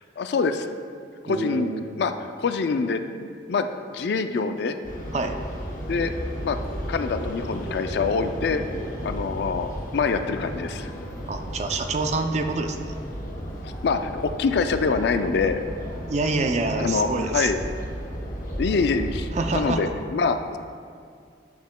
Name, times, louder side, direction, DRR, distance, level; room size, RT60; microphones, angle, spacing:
voice 1, 0.2-0.7 1.2-1.7 2.0-3.0 3.5-4.7 5.9-6.1 6.4-6.6 6.9-8.6 9.0-10.9 13.6-15.6 16.8-17.6 18.6-20.6, left 4 dB, 65° left, 8 dB, 0.3 m, -25 dB
voice 2, 1.3-2.0 5.1-5.4 11.3-12.8 16.1-17.5 19.3-19.9, right 3 dB, 35° right, 6 dB, 0.4 m, -26 dB
sound 1, 4.8-19.8, equal, 45° left, 0.9 m, -34 dB
8.5 x 7.9 x 2.2 m, 2.2 s
head